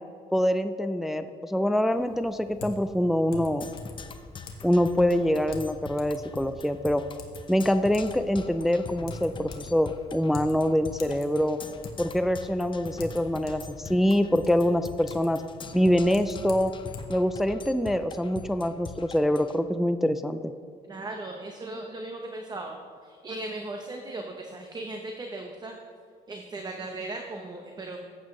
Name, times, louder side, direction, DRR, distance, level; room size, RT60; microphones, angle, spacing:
voice 1, 0.3-3.7 4.6-7.0 7.5-11.6 12.0-15.4 15.7-16.7 17.1-20.5, equal, ahead, 10 dB, 0.3 m, -25 dB
Typing, 1.9-17.0, left 3 dB, 65° left, 1.4 m, -46 dB
Percussion, 3.6-19.6, left 4 dB, 30° left, 0.7 m, -43 dB
voice 2, 20.9-22.8 23.0-25.8 26.3-28.0, right 2 dB, 25° right, 2 dB, 0.9 m, -37 dB
15.0 x 8.1 x 3.2 m, 2.1 s
cardioid pair, 110°, 17 cm